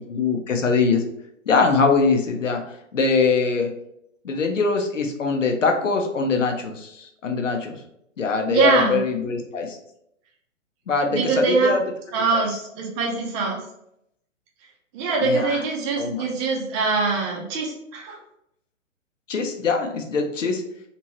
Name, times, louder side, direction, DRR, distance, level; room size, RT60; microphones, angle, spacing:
voice 1, 0.1-1.0 1.5-2.6 2.9-3.7 4.2-7.8 8.2-9.8 10.9-11.8 12.3-12.4 15.2-15.6 16.0-16.2 19.3-20.6, left 4 dB, 70° left, 4 dB, 0.8 m, -22 dB
voice 2, 8.5-9.0 11.1-11.7 12.1-13.6 14.9-18.2, right 4 dB, 25° right, -1 dB, 0.7 m, -23 dB
3.5 x 2.9 x 3.0 m, 0.75 s
figure-of-eight pair, 120°, 39 cm